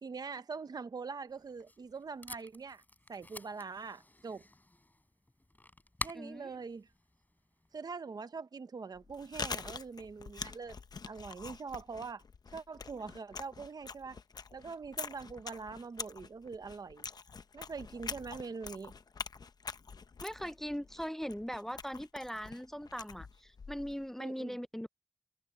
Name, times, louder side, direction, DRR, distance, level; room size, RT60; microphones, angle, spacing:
voice 1, 0.0-2.8 3.1-4.5 6.0-6.9 7.7-10.8 11.1-12.2 12.5-14.2 14.5-17.1 17.5-18.9 24.2-24.6, right 5 dB, 80° right, 1.0 m, -43 dB
Packing tape duct tape, 1.3-7.8, left 1 dB, 25° left, 4.6 m, -48 dB
voice 2, 6.1-6.5 20.2-24.9, equal, 5° left, 0.4 m, -40 dB
Chewing mastication, 9.0-24.1, left 5 dB, 80° left, 0.8 m, -45 dB
cardioid pair, 55°, 7 cm